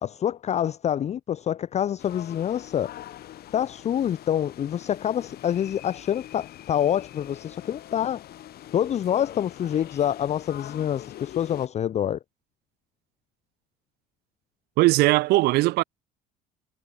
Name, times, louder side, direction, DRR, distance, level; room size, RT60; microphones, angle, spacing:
voice 1, 0.0-2.9 3.5-8.2 8.7-12.2, left 10 dB, 35° left, 0.5 m, -26 dB
sound 1, 2.0-11.7, left 13 dB, 50° left, 1.0 m, -43 dB
voice 2, 14.8-15.8, right 19 dB, 50° right, 0.4 m, -19 dB
figure-of-eight pair, 55°, 21 cm